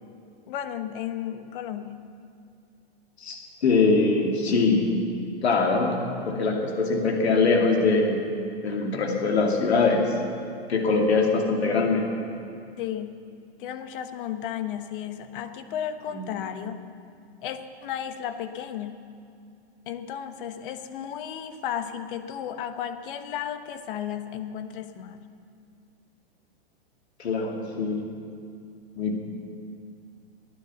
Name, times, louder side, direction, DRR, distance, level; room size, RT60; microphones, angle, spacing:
voice 1, 0.5-2.1 12.8-13.2 13.6-16.8 17.4-19.0 19.9-25.2, left 9 dB, 55° left, 9 dB, 1.2 m, -34 dB
voice 2, 3.2-4.9 5.4-6.0 6.3-8.2 8.6-10.1 10.7-12.1 16.1-16.4 27.2-28.1 29.0-29.2, left 3 dB, 85° left, 1 dB, 2.8 m, -23 dB
19.0 x 9.9 x 7.1 m, 2.4 s
hypercardioid pair, 125°, 31 cm